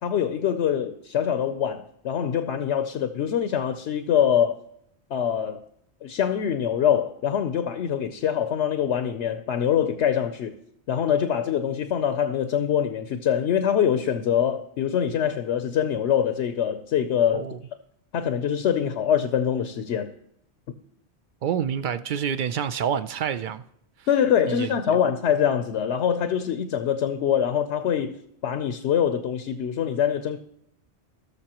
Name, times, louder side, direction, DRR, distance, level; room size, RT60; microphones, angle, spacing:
voice 1, 0.0-4.6 5.1-5.6 6.0-10.6 10.9-17.5 18.1-20.1 24.1-30.4, left 9 dB, 80° left, 0.9 m, -24 dB
voice 2, 21.4-23.6 24.5-24.7, right 8 dB, 60° right, 0.5 m, -27 dB
18.5 x 6.6 x 2.9 m
omnidirectional pair, 1.2 m